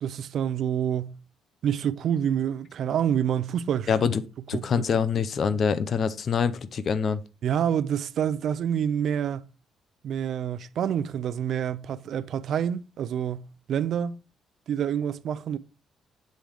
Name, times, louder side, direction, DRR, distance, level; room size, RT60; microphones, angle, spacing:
voice 1, 0.0-1.2 1.6-4.1 4.5-4.7 7.4-9.5 10.0-14.1 14.7-15.6, right 9 dB, 70° right, 0.4 m, -27 dB
voice 2, 3.9-4.2 4.5-7.2, left 6 dB, 55° left, 0.6 m, -25 dB
7.6 x 3.5 x 4.8 m
cardioid pair, 90°, 0 cm